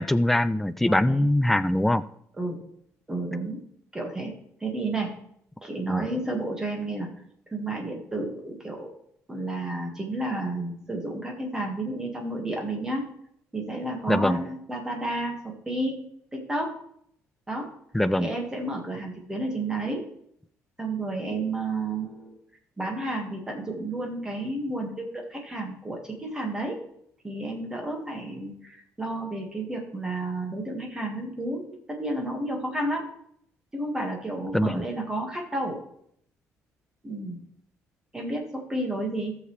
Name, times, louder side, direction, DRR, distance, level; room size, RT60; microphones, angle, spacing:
voice 1, 0.0-2.0 5.9-6.1 14.1-14.5 17.9-18.3 34.5-34.9, left 1 dB, 5° left, 12 dB, 0.3 m, -23 dB
voice 2, 0.8-1.3 2.4-2.6 3.1-3.6 3.9-4.3 4.6-5.1 5.6-7.1 7.5-8.9 9.3-13.1 13.5-16.0 16.3-16.8 17.5-17.7 18.2-20.1 20.8-22.3 22.8-26.8 27.2-33.1 33.7-35.8 37.0-37.4 38.1-39.4, right 2 dB, 10° right, 0 dB, 1.8 m, -31 dB
15.0 x 6.7 x 3.3 m, 0.70 s
cardioid pair, 165°, 5 cm